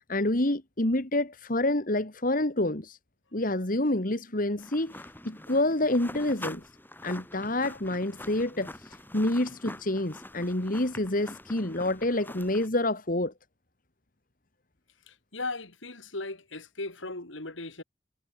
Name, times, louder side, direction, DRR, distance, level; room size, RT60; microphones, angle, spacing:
voice 1, 0.1-3.0 3.3-5.0 5.3-6.6 7.0-13.3, left 1 dB, 45° left, 2.2 m, -28 dB
sound 1, 4.6-12.7, left 1 dB, 10° left, 6.1 m, -44 dB
voice 2, 15.1-17.8, left 2 dB, 80° left, 4.8 m, -37 dB
head